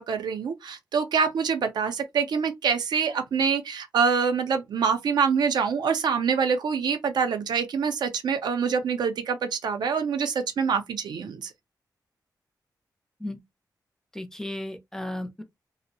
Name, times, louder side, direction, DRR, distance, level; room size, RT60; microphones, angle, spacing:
voice 1, 0.0-11.5, right 6 dB, 80° right, 0.5 m, -25 dB
voice 2, 14.1-15.4, left 1 dB, 5° left, 0.4 m, -34 dB
2.5 x 2.0 x 2.6 m
wide cardioid pair, 130°, 7 cm